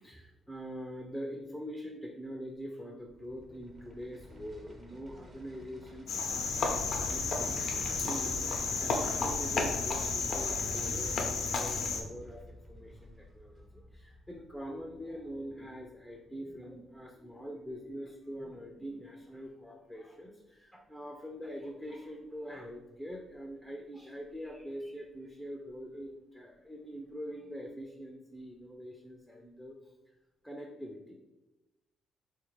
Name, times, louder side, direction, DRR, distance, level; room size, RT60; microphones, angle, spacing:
voice 1, 0.0-29.8 30.4-31.1, equal, 5° left, 0 dB, 0.4 m, -44 dB
sound 1, 3.0-16.2 16.5-16.6, left 1 dB, 35° right, 0.7 m, -48 dB
Cricket, 6.1-12.0, left 4 dB, 65° left, 0.5 m, -32 dB
3.7 x 2.5 x 3.1 m, 1.0 s
cardioid pair, 90°, 0 cm